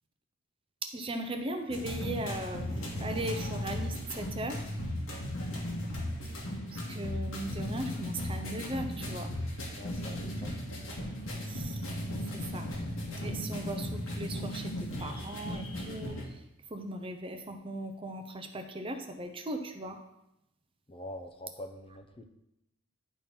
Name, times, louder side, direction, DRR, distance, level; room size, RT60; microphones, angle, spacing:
voice 1, 0.8-2.6 3.0-4.6 6.7-9.3 11.5-11.9 12.3-12.7 13.2-14.7 15.0-16.4 16.7-20.0, right 1 dB, 25° right, 6 dB, 0.6 m, -38 dB
sound 1, 1.7-16.3, left 1 dB, 70° left, 1.5 m, -36 dB
voice 2, 9.7-10.6 20.9-22.3, left 1 dB, 25° left, 5 dB, 0.5 m, -45 dB
10.5 x 3.7 x 4.3 m, 0.85 s
head